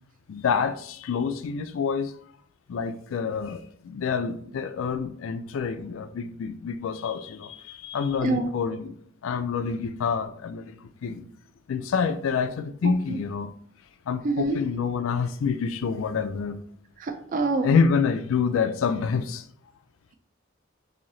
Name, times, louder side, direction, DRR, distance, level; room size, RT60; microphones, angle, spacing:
voice 1, 0.3-2.1 2.7-9.0 9.2-11.3 11.7-13.5 14.1-16.6 17.6-19.4, left 5 dB, 80° left, 0.4 m, -27 dB
voice 2, 12.8-13.2 14.2-14.6 17.0-17.7, right 3 dB, 40° right, 0.3 m, -26 dB
3.1 x 2.7 x 3.9 m
head